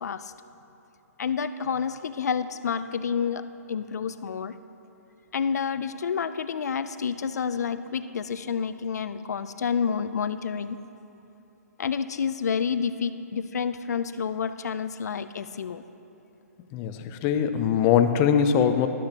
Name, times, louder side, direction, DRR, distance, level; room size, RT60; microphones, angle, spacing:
voice 1, 0.0-0.3 1.2-4.5 5.3-10.8 11.8-15.8, left 6 dB, 80° left, 12 dB, 0.5 m, -29 dB
voice 2, 16.7-18.9, left 8 dB, 25° left, 9 dB, 0.5 m, -22 dB
13.0 x 11.5 x 2.9 m, 3.0 s
hypercardioid pair, 145°, 9 cm